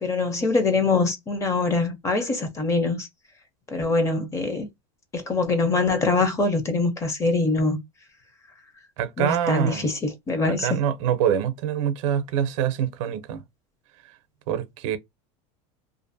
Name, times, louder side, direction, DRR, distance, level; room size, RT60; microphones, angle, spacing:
voice 1, 0.0-3.1 3.7-4.7 5.1-7.8 9.2-10.7, left 3 dB, 20° left, 0.6 m, -23 dB
voice 2, 9.0-9.9 10.4-13.4 14.5-15.0, right 9 dB, 75° right, 0.5 m, -25 dB
2.5 x 2.4 x 2.5 m
supercardioid pair, 155°, 17 cm